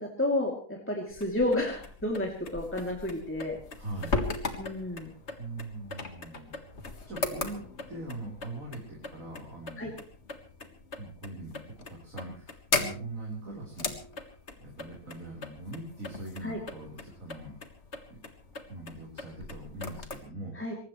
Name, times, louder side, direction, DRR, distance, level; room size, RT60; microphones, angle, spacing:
voice 1, 0.0-3.6 4.6-5.1 9.8-9.9 16.4-16.6 20.5-20.7, left 1 dB, 10° left, -1 dB, 2.8 m, -31 dB
sound 1, 1.1-20.2, left 3 dB, 50° left, 1.9 m, -38 dB
voice 2, 3.8-4.2 5.4-6.5 7.1-7.6 7.9-9.9 11.0-13.9 14.5-17.6 18.1-18.2 18.7-20.7, right 2 dB, 60° right, -3 dB, 4.6 m, -41 dB
23.0 x 19.5 x 3.2 m, 0.42 s
omnidirectional pair, 1.5 m